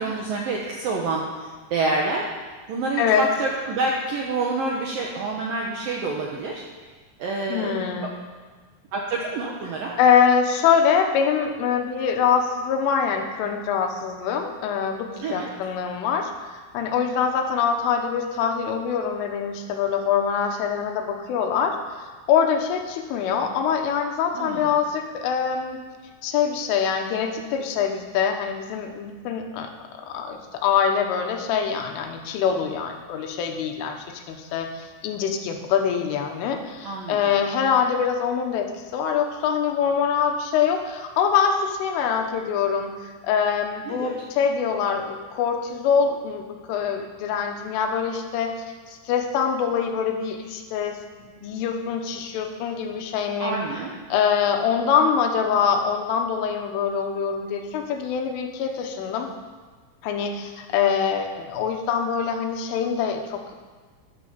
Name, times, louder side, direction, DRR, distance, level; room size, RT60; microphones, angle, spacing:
voice 1, 0.0-2.3 2.7-6.6 7.2-7.7 8.0-8.1 8.9-10.0 15.2-15.5 24.3-24.7 36.8-37.2 43.9-44.1 53.4-53.9, right 3 dB, 70° right, -2 dB, 2.2 m, -27 dB
voice 2, 7.5-8.1 10.0-25.8 26.2-48.5 48.9-51.0 51.4-53.6 54.1-59.3 60.0-63.6, left 7 dB, 80° left, 4 dB, 3.6 m, -24 dB
14.0 x 10.5 x 7.0 m, 1.4 s
omnidirectional pair, 5.8 m